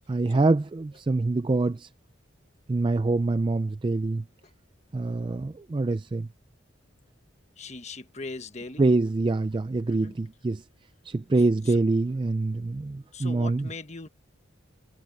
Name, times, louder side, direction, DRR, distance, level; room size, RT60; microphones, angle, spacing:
voice 1, 0.1-1.9 2.7-4.2 4.9-6.3 8.8-10.6 11.1-13.7, right 3 dB, 25° right, 0.3 m, -25 dB
voice 2, 7.6-8.9 9.9-10.2 11.6-11.8 13.1-14.1, left 3 dB, 35° left, 1.4 m, -40 dB
head